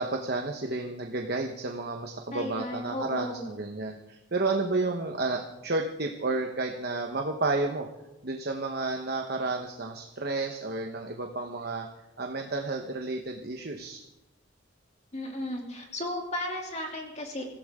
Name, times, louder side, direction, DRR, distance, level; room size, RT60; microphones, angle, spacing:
voice 1, 0.0-7.9 8.2-11.9 12.2-14.0, right 3 dB, 50° right, 2 dB, 1.1 m, -31 dB
voice 2, 2.3-3.5 15.1-17.4, left 1 dB, 30° left, 0 dB, 2.8 m, -34 dB
25.0 x 15.5 x 3.7 m, 0.96 s
head